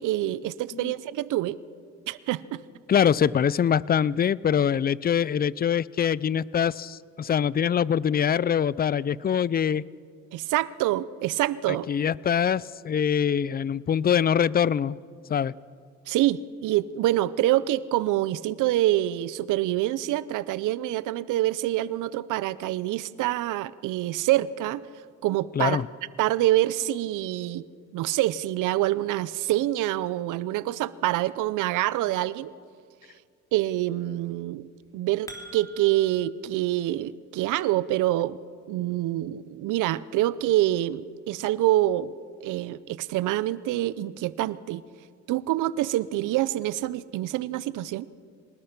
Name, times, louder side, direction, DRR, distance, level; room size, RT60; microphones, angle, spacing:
voice 1, 0.0-1.6 2.1-2.6 10.3-11.9 16.1-24.9 25.2-25.8 26.2-27.7 27.9-32.5 33.5-34.7 34.9-38.4 38.7-42.1 42.4-44.8 45.3-48.0, right 15 dB, 90° right, 18 dB, 0.7 m, -26 dB
voice 2, 2.9-9.9 11.7-15.0 15.3-15.5 25.6-25.9, left 8 dB, 30° left, 22 dB, 0.5 m, -24 dB
sound 1, 34.8-36.3, right 1 dB, 10° left, 3.1 m, -45 dB
24.5 x 19.5 x 5.9 m, 2.2 s
cardioid pair, 90°, 30 cm